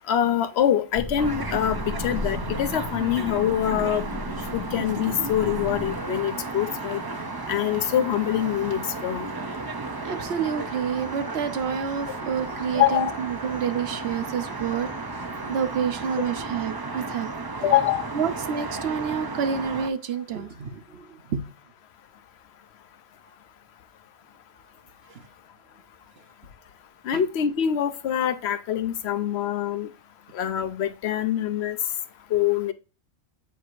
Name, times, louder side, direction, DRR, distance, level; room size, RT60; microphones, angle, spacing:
voice 1, 0.1-4.0 4.5-7.0 7.5-9.3 12.7-13.1 17.6-18.0 27.0-29.9 30.3-31.8 32.3-32.7, left 10 dB, 60° left, 0.8 m, -24 dB
sound 1, 0.9-6.0, left 2 dB, 20° left, 1.8 m, -34 dB
sound 2, 1.2-19.9, right 3 dB, 35° right, 0.4 m, -34 dB
Organ, 5.4-16.3, left 2 dB, 5° left, 2.3 m, -45 dB
voice 2, 10.0-14.9 15.5-17.3 18.1-21.4 27.1-27.2, right 7 dB, 60° right, 0.9 m, -28 dB
8.0 x 4.7 x 2.5 m
omnidirectional pair, 1.3 m